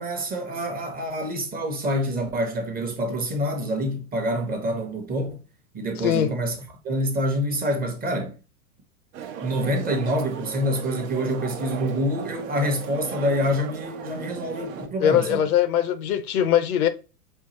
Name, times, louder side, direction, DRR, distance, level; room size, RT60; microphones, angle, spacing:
voice 1, 0.0-5.4 5.7-6.6 6.8-8.4 9.4-15.4, equal, 20° right, 0.9 m, -26 dB
voice 2, 6.0-6.3 15.0-16.9, left 10 dB, 70° left, 0.7 m, -21 dB
sound 1, 9.1-14.9, right 8 dB, 60° right, 0.9 m, -36 dB
5.4 x 2.4 x 2.9 m
hypercardioid pair, 105°, 46 cm